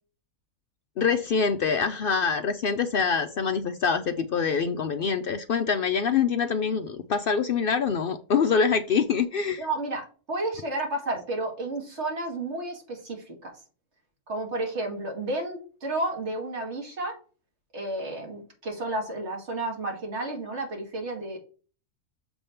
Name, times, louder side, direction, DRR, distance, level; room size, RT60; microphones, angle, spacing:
voice 1, 1.0-9.7, left 6 dB, 85° left, 8 dB, 0.4 m, -25 dB
voice 2, 9.6-13.5 14.3-17.1 17.7-21.4, right 2 dB, 50° right, 1 dB, 2.4 m, -32 dB
7.0 x 3.4 x 5.6 m, 0.38 s
omnidirectional pair, 1.6 m